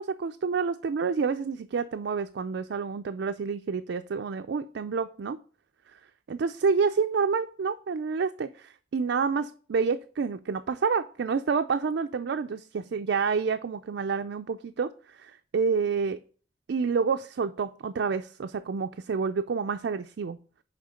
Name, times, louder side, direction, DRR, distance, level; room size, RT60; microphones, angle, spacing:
voice 1, 0.0-5.4 5.9-6.0 6.3-16.2 16.7-20.4, right 5 dB, 65° right, 8 dB, 0.4 m, -28 dB
6.5 x 4.9 x 5.1 m, 0.42 s
head